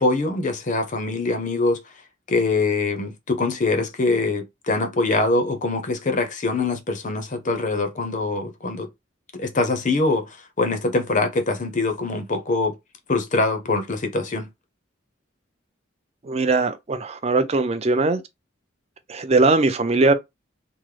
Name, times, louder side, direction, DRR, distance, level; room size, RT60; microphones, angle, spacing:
voice 1, 0.0-1.8 2.3-8.9 9.4-12.7 13.1-14.5, left 3 dB, 40° left, 0.6 m, -23 dB
voice 2, 16.3-18.2 19.1-20.1, right 3 dB, 30° right, 0.5 m, -20 dB
3.6 x 2.0 x 3.2 m
head